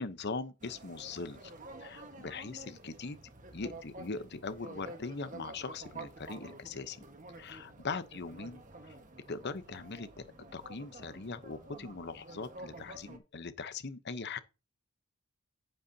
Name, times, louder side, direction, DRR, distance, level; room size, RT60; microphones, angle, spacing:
voice 1, 0.0-1.5 1.8-3.2 3.5-7.0 7.4-9.0 9.3-10.2 10.5-14.4, left 4 dB, 50° left, 0.9 m, -41 dB
sound 1, 0.6-13.2, right 2 dB, 35° right, 1.5 m, -50 dB
9.2 x 8.6 x 2.8 m
head